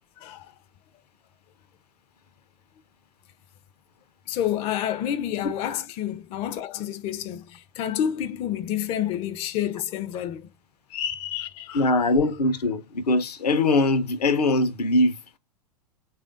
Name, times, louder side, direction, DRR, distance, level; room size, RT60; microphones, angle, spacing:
voice 1, 0.2-0.5 4.3-10.5 10.9-11.9, left 10 dB, 30° left, 0.4 m, -29 dB
voice 2, 11.7-15.4, left 2 dB, 75° left, 0.6 m, -22 dB
3.2 x 2.5 x 3.7 m
figure-of-eight pair, 95°, 20 cm